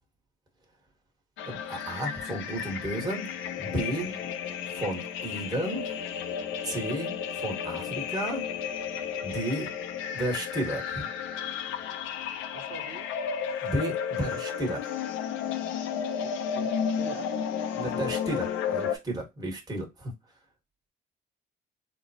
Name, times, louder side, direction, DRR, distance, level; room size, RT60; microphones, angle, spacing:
sound 1, 1.4-19.0, left 8 dB, 90° left, 0.5 m, -33 dB
voice 1, 1.5-3.2 3.6-4.2 4.7-5.8 6.6-8.4 9.2-9.7 10.1-10.8 13.6-14.8 17.7-20.1, right 1 dB, 20° right, 1.4 m, -32 dB
voice 2, 12.5-13.1 16.2-17.3, right 5 dB, 60° right, 1.3 m, -44 dB
3.9 x 2.2 x 2.7 m
cardioid pair, 90°, 20 cm